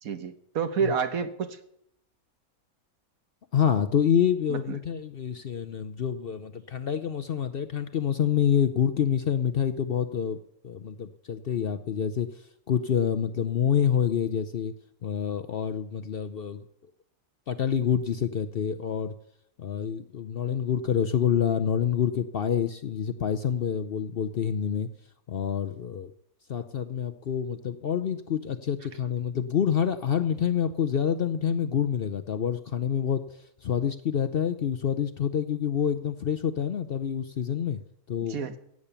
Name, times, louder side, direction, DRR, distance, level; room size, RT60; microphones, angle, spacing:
voice 1, 0.0-1.6 4.5-4.8 38.3-38.6, right 6 dB, 75° right, 10 dB, 1.5 m, -29 dB
voice 2, 3.5-10.4 10.6-12.4 12.7-14.7 15.0-16.6 17.5-19.1 19.6-24.9 25.3-26.1 26.5-37.8 38.1-38.4, left 8 dB, 55° left, 9 dB, 0.7 m, -27 dB
16.0 x 8.6 x 6.9 m, 0.75 s
omnidirectional pair, 1.5 m